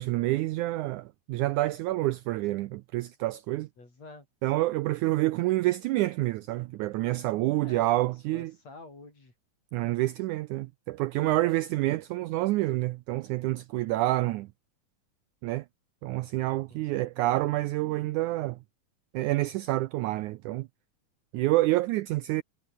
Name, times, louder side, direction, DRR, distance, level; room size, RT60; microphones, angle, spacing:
voice 1, 0.0-3.7 4.4-8.5 9.7-14.5 15.4-15.7 16.0-18.6 19.1-20.7 21.3-22.4, right 17 dB, 80° right, 1.8 m, -28 dB
voice 2, 3.8-4.3 7.6-9.3 16.7-17.5, left 3 dB, 50° left, 9.1 m, -50 dB
omnidirectional pair, 4.0 m